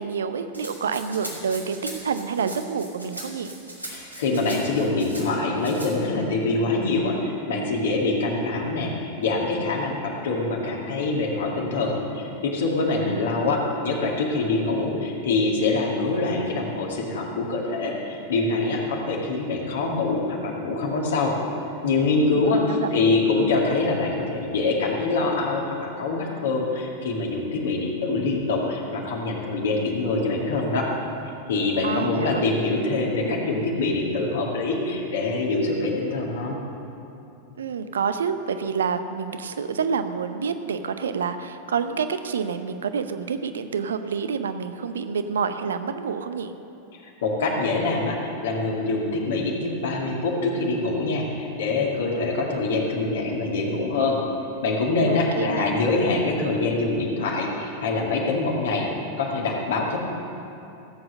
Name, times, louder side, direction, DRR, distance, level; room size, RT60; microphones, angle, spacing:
voice 1, 0.0-3.5 13.0-13.5 22.3-23.2 31.8-32.4 37.6-46.5 55.1-55.7, right 6 dB, 65° right, 10 dB, 0.7 m, -28 dB
Rattle (instrument), 0.5-5.3 5.6-5.9, right 1 dB, 90° right, 2.4 m, -39 dB
voice 2, 3.9-21.3 21.8-30.9 31.5-36.6 46.9-54.2 54.6-58.9 59.2-60.0, left 3 dB, 60° left, -2 dB, 2.1 m, -24 dB
15.5 x 7.9 x 6.6 m, 2.7 s
figure-of-eight pair, 90°, 0 cm